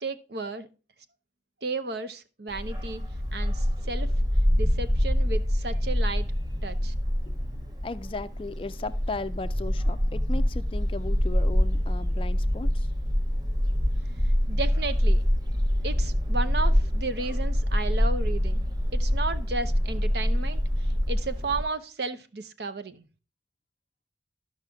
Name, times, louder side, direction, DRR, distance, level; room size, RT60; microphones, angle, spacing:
voice 1, 0.0-0.7 1.6-3.0 3.3-4.1 4.6-6.3 6.6-6.9 14.5-15.2 15.8-18.7 18.9-23.0, right 3 dB, 65° right, 0.8 m, -33 dB
Bark, 2.5-21.6, equal, 20° right, 0.8 m, -25 dB
voice 2, 7.8-12.9, left 2 dB, 30° left, 0.4 m, -36 dB
13.0 x 5.7 x 3.5 m
head